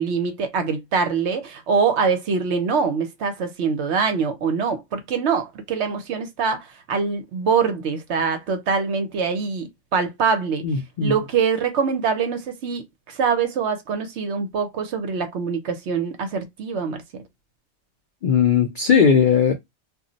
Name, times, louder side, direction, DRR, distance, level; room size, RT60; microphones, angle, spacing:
voice 1, 0.0-10.6 11.0-17.0, right 5 dB, 65° right, 0.8 m, -24 dB
voice 2, 10.6-11.1 18.2-19.5, left 7 dB, 85° left, 0.4 m, -18 dB
2.4 x 2.0 x 3.8 m
omnidirectional pair, 1.5 m